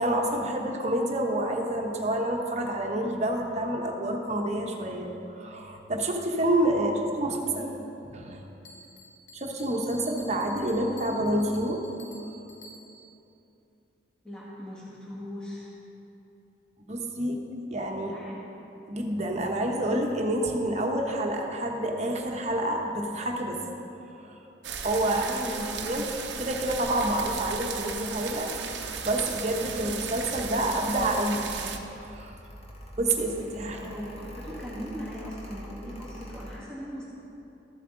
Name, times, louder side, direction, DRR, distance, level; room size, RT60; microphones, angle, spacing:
voice 1, 0.0-7.7 8.1-8.4 9.3-11.8 16.8-17.4 17.7-18.1 18.9-23.6 24.2-24.4 24.8-25.2 25.9-28.5 29.0-31.5 31.8-32.3 33.0-33.8, right 1 dB, 40° right, 1 dB, 1.1 m, -28 dB
voice 2, 7.2-7.7 8.2-8.4 14.2-15.7 18.0-18.4 25.1-25.8 33.7-37.1, equal, 5° left, -8 dB, 1.8 m, -39 dB
Bell, 8.6-13.2, equal, 70° left, 1.2 m, -51 dB
sound 1, 24.6-31.8, right 6 dB, 75° right, 0.8 m, -36 dB
Mechanical fan, 28.7-36.6, equal, 35° left, 1.4 m, -45 dB
13.5 x 7.6 x 3.9 m, 2.9 s
head